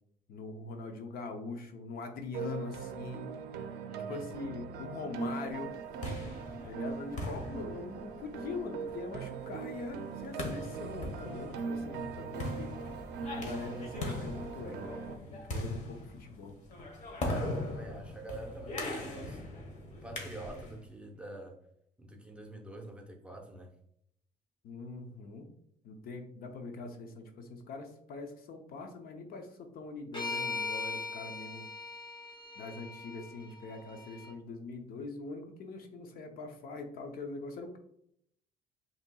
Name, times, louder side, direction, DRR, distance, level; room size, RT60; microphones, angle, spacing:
voice 1, 0.3-3.3 4.1-5.8 6.6-12.8 13.3-14.9 15.3-16.6 24.6-25.5 25.8-31.7 32.6-37.8, left 3 dB, 60° left, 5 dB, 0.7 m, -42 dB
sound 1, 2.3-15.1, right 6 dB, 75° right, 0.5 m, -41 dB
voice 2, 3.9-4.3 17.2-19.4 20.0-21.6 22.0-23.7, right 2 dB, 5° right, 2 dB, 0.7 m, -46 dB
sound 2, 5.7-20.8, left 1 dB, 45° left, 1.1 m, -40 dB
sound 3, 30.1-34.3, left 3 dB, 25° left, 1.0 m, -40 dB
5.4 x 2.9 x 2.3 m, 0.72 s
cardioid pair, 110°, 17 cm